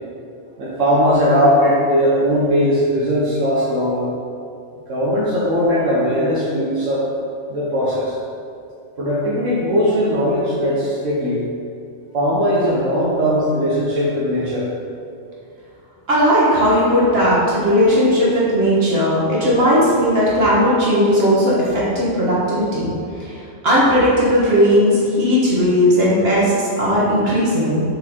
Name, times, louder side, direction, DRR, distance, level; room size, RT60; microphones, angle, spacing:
voice 1, 0.6-4.1 4.9-7.1 7.5-8.1 9.0-11.4 12.1-14.7, equal, 80° right, -7 dB, 1.5 m, -19 dB
voice 2, 16.1-22.9 23.2-23.3 23.6-27.8, equal, 50° right, -8 dB, 2.2 m, -16 dB
6.1 x 5.3 x 4.5 m, 2.6 s
omnidirectional pair, 1.3 m